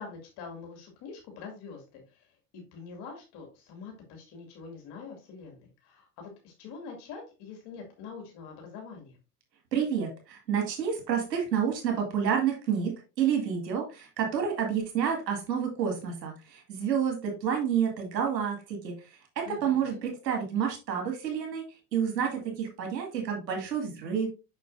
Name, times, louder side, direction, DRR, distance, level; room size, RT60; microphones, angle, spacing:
voice 1, 0.0-2.3 2.5-9.2 19.4-20.0, left 5 dB, 55° left, 2 dB, 2.6 m, -45 dB
voice 2, 9.7-18.9 19.4-21.6 21.9-24.3, right 7 dB, 85° right, 2 dB, 2.2 m, -29 dB
6.6 x 6.1 x 2.6 m, 0.29 s
hypercardioid pair, 85°, 48 cm